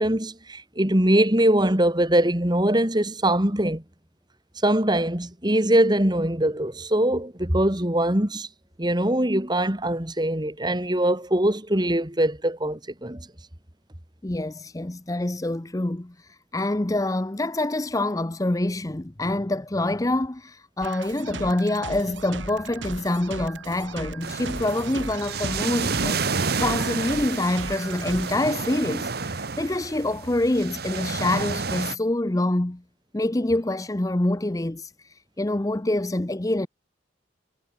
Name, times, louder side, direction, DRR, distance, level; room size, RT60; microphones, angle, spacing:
voice 1, 0.0-3.8 4.6-8.5 8.8-13.3, right 1 dB, 20° right, 2.4 m, -22 dB
voice 2, 14.2-16.1 16.5-26.2 26.6-32.8 33.1-34.9 35.4-36.7, left 1 dB, 20° left, 0.6 m, -26 dB
sound 1, 20.8-28.4, right 3 dB, 80° right, 4.3 m, -37 dB
sound 2, 24.2-32.0, right 4 dB, 55° right, 1.3 m, -30 dB
head